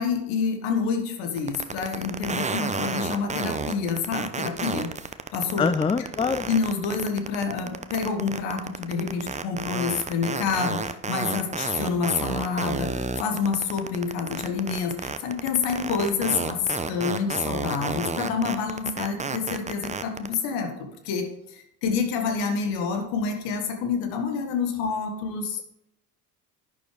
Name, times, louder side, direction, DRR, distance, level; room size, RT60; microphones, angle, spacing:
voice 1, 0.0-4.9 5.3-5.7 6.5-25.6, left 5 dB, 65° left, 6 dB, 1.8 m, -28 dB
sound 1, 1.4-20.3, right 4 dB, 15° right, 0.8 m, -30 dB
voice 2, 5.6-6.5, left 5 dB, 10° left, 14 dB, 0.4 m, -24 dB
11.0 x 9.4 x 3.3 m, 0.79 s
hypercardioid pair, 55°, 47 cm